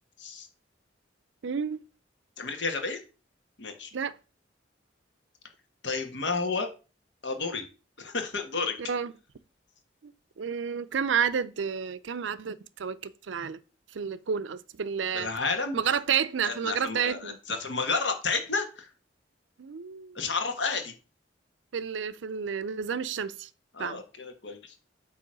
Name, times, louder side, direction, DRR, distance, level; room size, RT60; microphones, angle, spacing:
voice 1, 1.4-1.8 3.9-4.2 8.9-9.1 10.0-13.6 13.9-15.3 15.7-17.4 19.6-20.2 21.7-23.5 23.8-24.0, right 7 dB, 75° right, 0.5 m, -30 dB
voice 2, 2.4-3.0 3.6-3.9 5.8-6.7 7.2-7.6 8.0-8.8 15.1-15.8 16.4-18.9 20.1-20.9 23.7-24.7, left 4 dB, 70° left, 1.3 m, -31 dB
8.5 x 3.1 x 6.2 m
head